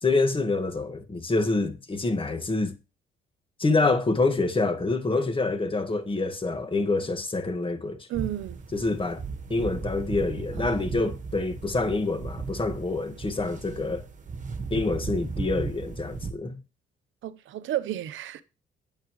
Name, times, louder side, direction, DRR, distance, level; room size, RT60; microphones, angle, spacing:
voice 1, 0.0-2.8 3.6-8.1 8.7-9.2 9.5-14.1 14.7-16.6, left 3 dB, 25° left, 1.8 m, -26 dB
sound 1, 8.1-16.3, right 4 dB, 40° right, 1.5 m, -36 dB
voice 2, 8.1-8.6 10.6-10.7 17.2-18.4, right 13 dB, 75° right, 0.9 m, -32 dB
9.3 x 8.8 x 3.1 m
cardioid pair, 90°, 20 cm